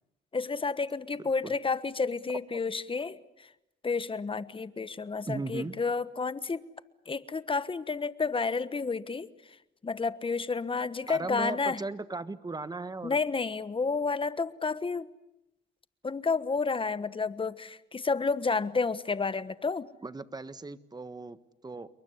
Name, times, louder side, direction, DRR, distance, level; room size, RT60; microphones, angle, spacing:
voice 1, 0.3-3.5 3.8-6.6 7.1-9.3 9.8-11.8 13.0-15.1 16.0-19.9, left 4 dB, 25° left, 14 dB, 1.2 m, -30 dB
voice 2, 5.2-5.7 11.1-13.2 20.0-21.4 21.6-21.9, right 3 dB, 20° right, 13 dB, 1.4 m, -37 dB
28.5 x 23.0 x 8.3 m, 0.90 s
cardioid pair, 90°, 20 cm